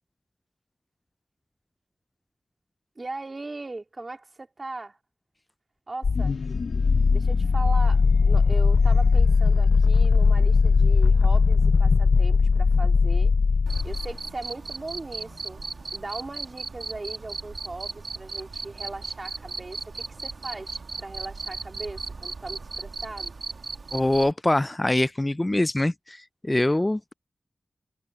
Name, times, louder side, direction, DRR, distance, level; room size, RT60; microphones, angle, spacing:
voice 1, 2.9-5.0 5.9-6.4 7.1-13.3 13.8-15.6 15.9-23.4, right 2 dB, 45° right, 3.1 m, -38 dB
sound 1, 6.0-14.2, left 4 dB, 85° left, 0.6 m, -19 dB
Cricket, 13.7-24.3, right 4 dB, 70° right, 1.2 m, -37 dB
voice 2, 23.9-27.0, left 1 dB, 25° left, 0.4 m, -24 dB
wide cardioid pair, 60°, 0 cm